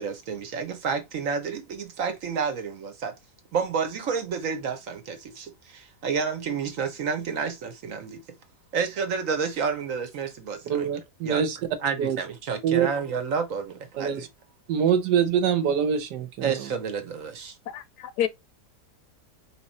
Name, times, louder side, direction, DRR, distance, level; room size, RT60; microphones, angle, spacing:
voice 1, 0.0-3.1 3.5-8.2 8.7-10.9 11.2-11.5 11.8-14.3 16.4-17.6, right 6 dB, 55° right, 1.1 m, -30 dB
voice 2, 10.7-11.6 12.0-12.2 12.6-12.9 14.0-14.3 14.7-16.7, right 8 dB, 80° right, 1.4 m, -24 dB
voice 3, 17.7-18.3, left 10 dB, 75° left, 1.1 m, -28 dB
3.9 x 3.0 x 4.1 m
omnidirectional pair, 1.8 m